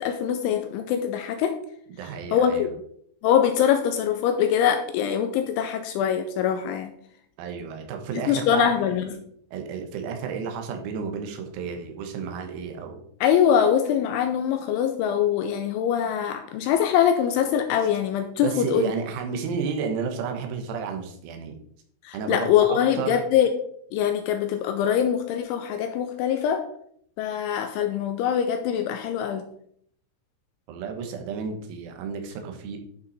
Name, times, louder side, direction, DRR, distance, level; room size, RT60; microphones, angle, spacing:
voice 1, 0.0-1.6 2.3-2.7 3.2-6.9 8.3-9.2 13.2-18.9 22.0-23.5 23.9-26.7 27.2-29.4, left 9 dB, 85° left, 7 dB, 2.8 m, -23 dB
voice 2, 2.0-2.7 7.4-8.7 9.5-13.0 18.4-21.6 22.1-23.2 30.7-32.8, right 6 dB, 90° right, 4 dB, 4.1 m, -32 dB
11.5 x 5.7 x 4.1 m, 0.65 s
omnidirectional pair, 6.0 m